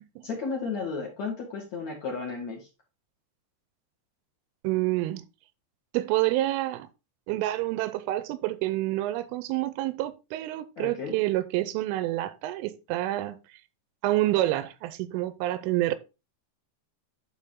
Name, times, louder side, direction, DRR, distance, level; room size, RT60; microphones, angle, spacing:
voice 1, 0.2-2.7 10.8-11.1, left 4 dB, 50° left, 2.6 m, -33 dB
voice 2, 4.6-5.3 5.9-6.9 7.3-13.4 14.0-16.0, right 16 dB, 85° right, 3.2 m, -28 dB
11.5 x 4.5 x 3.7 m
omnidirectional pair, 5.6 m